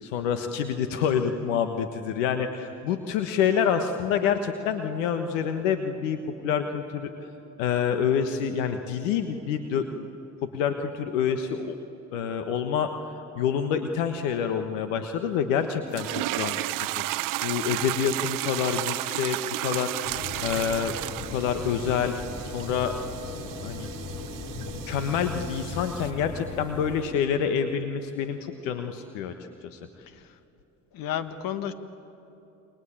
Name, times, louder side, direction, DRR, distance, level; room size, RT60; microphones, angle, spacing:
voice 1, 0.0-7.3 7.6-9.9 10.5-11.7 12.1-20.9 21.3-22.1 22.5-22.9 23.6-23.9 24.5-29.3 29.6-29.8, left 7 dB, 80° left, 8 dB, 1.4 m, -27 dB
sound 1, 15.9-26.1, right 18 dB, 60° right, 0.7 m, -33 dB
sound 2, 20.0-27.1, left 2 dB, 45° left, 7.8 m, -38 dB
voice 2, 20.5-20.9 30.1-30.4 30.9-31.7, left 10 dB, 65° left, 11 dB, 1.8 m, -33 dB
28.5 x 23.5 x 8.8 m, 3.0 s
hypercardioid pair, 60°, 37 cm